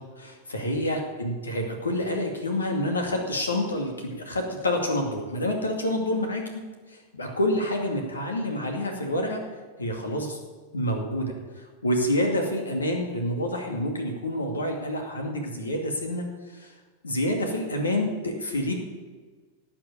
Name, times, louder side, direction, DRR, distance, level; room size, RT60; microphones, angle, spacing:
voice 1, 0.2-6.6 6.9-9.4 9.8-10.4 10.7-11.3 11.8-16.7 17.0-18.7, left 1 dB, 75° left, 2 dB, 2.3 m, -28 dB
17.0 x 6.2 x 8.4 m, 1.4 s
figure-of-eight pair, 90°, 0 cm